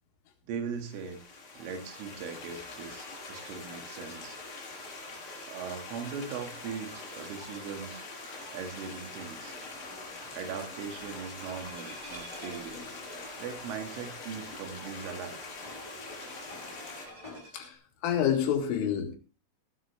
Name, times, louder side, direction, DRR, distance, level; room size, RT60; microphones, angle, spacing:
voice 1, 0.5-1.2 1.6-4.4 5.4-8.0 8.5-9.6 10.3-12.9 13.4-15.4, right 6 dB, 80° right, 5 dB, 4.4 m, -39 dB
Stream, 0.7-17.1, left 3 dB, 50° left, 6.2 m, -44 dB
sound 1, 6.8-17.7, right 2 dB, 35° right, 4.4 m, -55 dB
sound 2, 9.3-17.4, left 2 dB, 10° left, 2.3 m, -51 dB
voice 2, 18.0-19.2, left 9 dB, 85° left, 4 dB, 4.5 m, -28 dB
16.5 x 11.5 x 3.2 m, 0.33 s
omnidirectional pair, 5.6 m